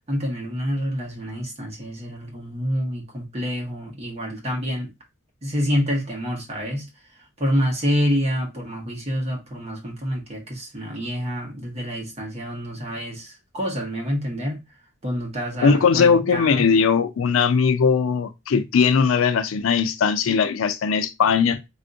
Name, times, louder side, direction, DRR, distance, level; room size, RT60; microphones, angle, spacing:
voice 1, 0.1-4.9 5.4-6.9 7.4-14.6 15.0-16.6, equal, 30° right, 1.1 m, -27 dB
voice 2, 15.6-21.6, left 6 dB, 85° left, 0.4 m, -19 dB
3.4 x 2.5 x 2.5 m
head